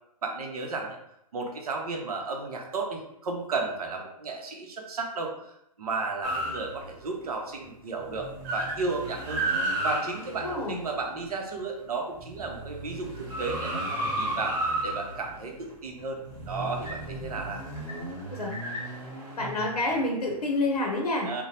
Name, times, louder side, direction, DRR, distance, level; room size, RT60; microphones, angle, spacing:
voice 1, 0.2-1.0 1.3-9.4 9.8-14.6 14.8-16.2 16.5-17.6 21.2-21.4, right 3 dB, 70° right, 1 dB, 0.7 m, -33 dB
sound 1, 6.2-7.2 7.6-7.7 8.0-11.5 12.0-20.6, right 1 dB, 30° right, 1.0 m, -34 dB
voice 2, 10.4-10.8 18.3-18.5 19.4-21.3, left 2 dB, 75° left, 0 dB, 0.7 m, -28 dB
2.9 x 2.1 x 2.8 m, 0.78 s
hypercardioid pair, 135°, 20 cm